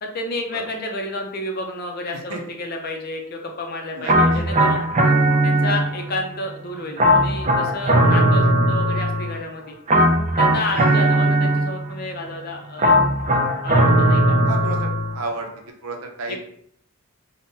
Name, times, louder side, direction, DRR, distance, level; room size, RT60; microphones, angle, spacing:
voice 1, 0.0-4.9 5.4-9.8 10.4-12.9 13.6-14.4 16.3-16.4, left 2 dB, 45° left, 2 dB, 0.5 m, -30 dB
voice 2, 3.9-4.4 8.1-8.5 10.7-11.0 14.5-14.9 15.1-15.5 15.8-16.4, right 3 dB, 85° right, 3 dB, 0.6 m, -32 dB
sound 1, 4.1-6.1 7.0-9.4 9.9-12.0 12.8-15.2, right 1 dB, 35° right, 0.4 m, -18 dB
3.6 x 2.1 x 2.6 m, 0.67 s
head